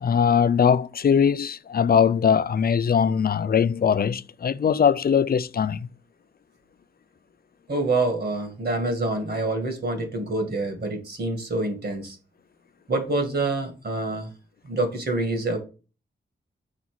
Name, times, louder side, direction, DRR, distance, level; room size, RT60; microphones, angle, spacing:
voice 1, 0.0-5.9, left 7 dB, 55° left, 0.4 m, -21 dB
voice 2, 7.7-12.2 12.9-14.3 14.6-15.6, right 2 dB, 60° right, 2.1 m, -26 dB
6.0 x 4.0 x 6.0 m
wide cardioid pair, 125°, 19 cm